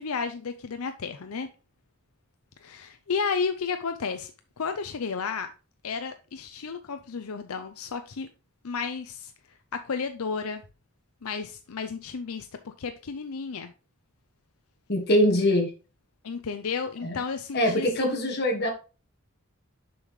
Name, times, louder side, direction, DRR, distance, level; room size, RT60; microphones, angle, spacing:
voice 1, 0.0-1.5 2.6-4.3 4.6-5.5 5.8-8.3 8.6-9.3 9.7-10.6 11.2-13.7 16.2-18.1, left 5 dB, 85° left, 0.6 m, -32 dB
voice 2, 14.9-15.7 17.0-17.2 17.5-18.7, left 1 dB, 50° left, 1.7 m, -23 dB
6.8 x 5.6 x 3.1 m
head